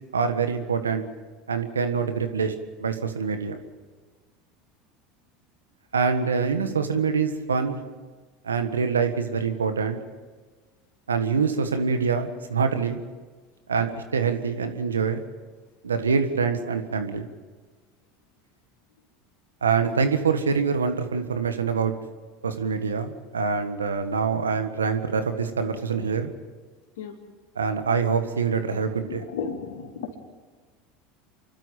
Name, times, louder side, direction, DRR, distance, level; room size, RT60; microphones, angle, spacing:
voice 1, 0.1-1.0 1.5-2.5 2.8-3.6 5.9-7.8 8.4-10.0 11.1-13.0 13.7-15.2 15.8-17.3 19.6-21.9 22.4-26.3 27.5-29.2, right 5 dB, 90° right, 8 dB, 1.5 m, -25 dB
voice 2, 29.1-30.2, left 6 dB, 75° left, 3 dB, 3.0 m, -34 dB
28.5 x 12.5 x 7.7 m, 1.4 s
hypercardioid pair, 80°, 0 cm